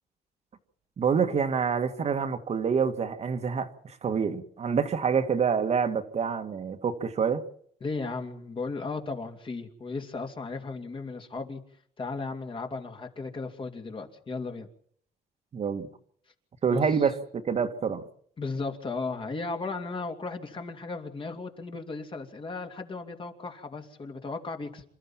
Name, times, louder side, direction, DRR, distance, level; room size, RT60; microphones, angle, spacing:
voice 1, 1.0-7.4 15.5-15.9 16.6-17.2 17.5-18.0, right 6 dB, 40° right, 7 dB, 1.8 m, -27 dB
voice 2, 7.8-11.6 12.0-14.7 16.6-16.8 18.4-24.8, left 3 dB, 30° left, 5 dB, 2.8 m, -35 dB
27.5 x 13.5 x 7.4 m, 0.63 s
cardioid pair, 110°, 17 cm